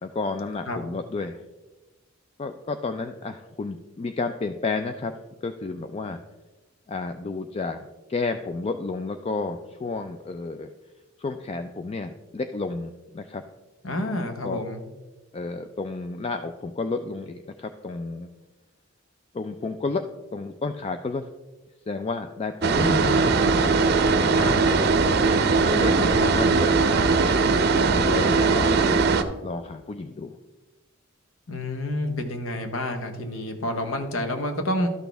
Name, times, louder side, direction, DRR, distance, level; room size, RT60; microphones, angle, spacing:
voice 1, 0.0-1.4 2.4-5.2 5.4-6.2 6.9-10.7 11.2-13.4 14.4-14.6 15.3-18.3 19.3-20.1 20.3-21.2 21.9-22.7 23.4-23.7 24.7-24.8 25.7-26.8 28.0-28.7 29.4-30.3, left 3 dB, 30° left, 8 dB, 0.4 m, -31 dB
voice 2, 13.8-14.8 22.7-23.4 24.4-24.6 31.5-34.9, left 1 dB, 75° left, 6 dB, 1.1 m, -29 dB
sound 1, 22.6-29.2, right 4 dB, 55° right, 0.6 m, -20 dB
12.5 x 6.2 x 3.4 m, 1.2 s
head